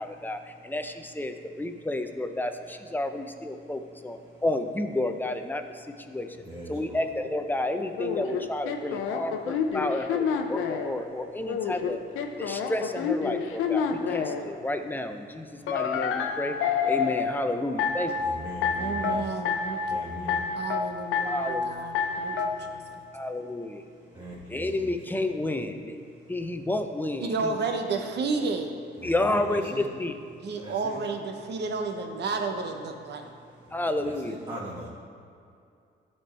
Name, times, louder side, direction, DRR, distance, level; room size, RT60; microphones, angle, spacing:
voice 1, 0.0-5.6 6.1-6.3 6.7-12.0 12.4-16.6 16.8-18.1 19.9-20.0 21.2-21.7 23.1-23.8 24.5-25.9 26.3-27.5 29.0-30.1 33.7-34.4, left 1 dB, 10° left, 6 dB, 0.6 m, -31 dB
voice 2, 6.5-7.0 18.2-19.2 19.9-20.4 24.1-24.9 29.0-29.8 30.6-31.0 34.0-34.9, right 1 dB, 20° right, -6 dB, 1.3 m, -40 dB
sound 1, 8.0-10.9 11.5-14.4 15.7-17.3 17.8-18.3 18.6-19.1 19.4-19.9 20.3-20.8 21.1-21.6 21.9-22.5, left 6 dB, 85° left, 0.6 m, -28 dB
voice 3, 18.8-20.3 20.5-23.0 27.2-28.7 30.4-33.3, right 4 dB, 60° right, 4 dB, 0.9 m, -32 dB
13.0 x 4.4 x 3.3 m, 2.4 s
cardioid pair, 90°, 20 cm